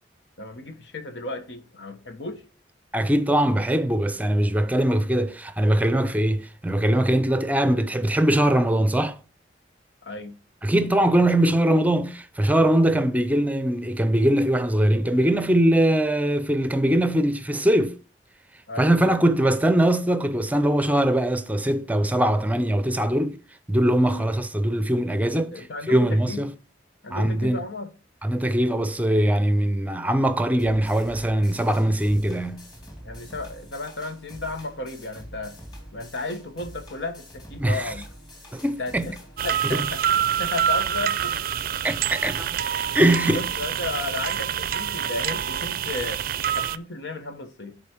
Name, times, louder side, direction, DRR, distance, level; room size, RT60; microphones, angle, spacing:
voice 1, 0.4-2.4 7.5-7.6 10.0-10.4 18.7-19.2 24.1-24.3 25.3-26.4 27.0-27.9 33.0-35.6 35.9-38.0 38.6-40.0 40.4-41.4 42.2-42.3 43.3-46.3 46.5-47.8, left 2 dB, 85° left, 1.2 m, -34 dB
voice 2, 2.9-9.2 10.6-18.0 18.8-23.4 23.7-26.5 27.1-27.6 28.2-32.6 37.6-37.9 38.5-39.1 39.6-39.9 41.8-42.5 42.9-43.5, right 1 dB, 10° right, 0.5 m, -21 dB
sound 1, 30.6-39.7, equal, 25° left, 2.4 m, -45 dB
sound 2, 39.4-46.8, right 9 dB, 55° right, 0.4 m, -26 dB
11.0 x 4.2 x 4.5 m
head